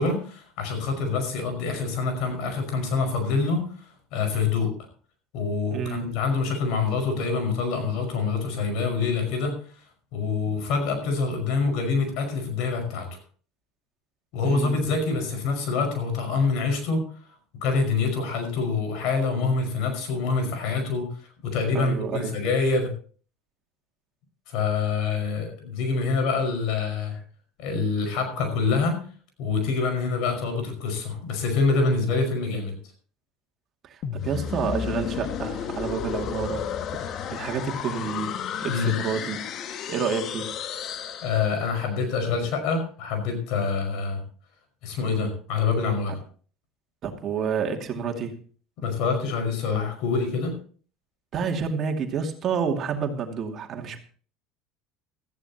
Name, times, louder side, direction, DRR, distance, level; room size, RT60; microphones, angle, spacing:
voice 1, 0.0-4.7 5.3-9.5 10.1-13.2 14.3-17.3 17.6-21.1 21.4-22.9 24.5-27.2 27.6-29.0 29.4-32.8 38.7-38.9 41.2-44.2 44.8-46.2 48.8-50.5, left 4 dB, 70° left, 5 dB, 5.4 m, -26 dB
voice 2, 5.7-6.1 14.4-14.8 21.7-22.4 33.8-36.7 37.3-39.4 39.9-40.5 46.1-46.2 47.0-48.4 51.3-54.0, right 6 dB, 45° right, 3 dB, 2.4 m, -29 dB
sound 1, 34.0-41.9, left 8 dB, 50° left, 1.2 m, -32 dB
16.0 x 14.0 x 3.0 m, 0.42 s
supercardioid pair, 95°, 0 cm